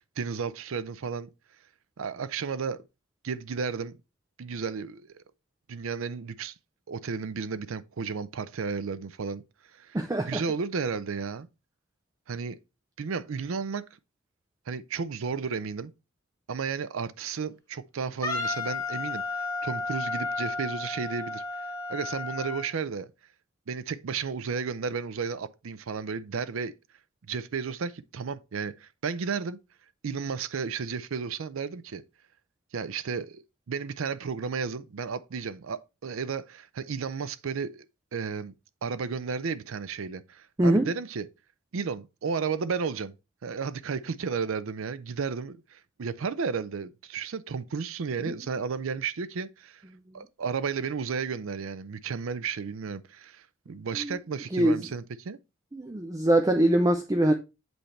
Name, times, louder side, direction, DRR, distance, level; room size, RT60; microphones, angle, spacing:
voice 1, 0.2-1.3 2.0-2.8 3.2-3.9 4.4-5.2 5.7-6.5 6.9-9.4 9.7-11.5 12.3-12.6 13.0-13.8 14.7-15.9 16.5-21.4 21.9-23.1 23.7-26.7 27.3-29.6 30.0-32.0 32.7-37.9 38.1-38.5 38.8-41.3 41.7-43.1 43.4-49.8 50.1-55.4, right 5 dB, 70° right, 0.5 m, -33 dB
voice 2, 9.9-10.4 40.6-40.9 54.0-54.1 54.5-54.7 55.7-57.3, right 1 dB, 15° right, 0.4 m, -23 dB
Wind instrument woodwind instrument, 18.2-22.7, left 3 dB, 15° left, 1.0 m, -32 dB
7.9 x 3.3 x 4.2 m
head